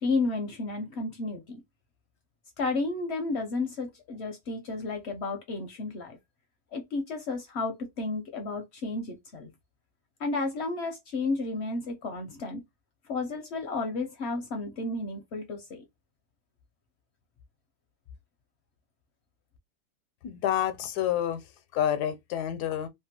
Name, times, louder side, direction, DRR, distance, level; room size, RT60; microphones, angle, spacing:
voice 1, 0.0-1.6 2.6-6.2 6.7-9.5 10.2-12.6 13.1-15.8, left 3 dB, 65° left, 0.7 m, -32 dB
voice 2, 20.2-21.4 21.7-22.9, left 10 dB, 85° left, 1.1 m, -28 dB
2.9 x 2.2 x 2.8 m
omnidirectional pair, 1.7 m